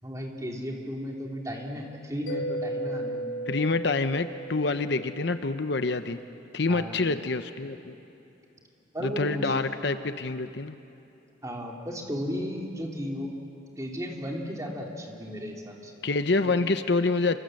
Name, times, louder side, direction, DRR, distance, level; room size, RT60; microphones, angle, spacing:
voice 1, 0.0-3.3 6.7-6.9 8.9-9.5 11.4-13.3 13.8-15.9, equal, 15° right, 0 dB, 3.0 m, -34 dB
Mallet percussion, 2.3-5.7, right 1 dB, 80° left, 2.2 m, -35 dB
voice 2, 3.5-6.2 6.5-7.9 9.0-10.7 16.0-17.4, left 3 dB, 60° left, 10 dB, 0.8 m, -27 dB
28.0 x 25.0 x 7.7 m, 2.8 s
head